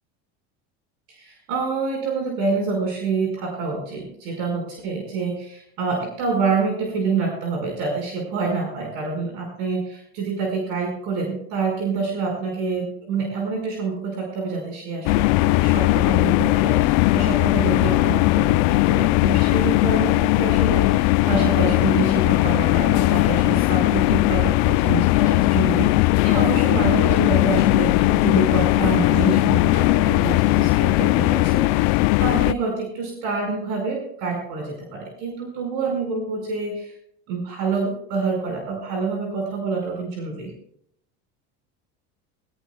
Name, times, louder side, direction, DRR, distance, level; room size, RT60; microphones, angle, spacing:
voice 1, 1.1-37.0 37.3-40.5, right 4 dB, 70° right, 1 dB, 5.1 m, -27 dB
sound 1, 15.1-32.5, left 20 dB, 65° left, 0.5 m, -18 dB
21.0 x 17.0 x 2.3 m, 0.70 s
supercardioid pair, 130°, 31 cm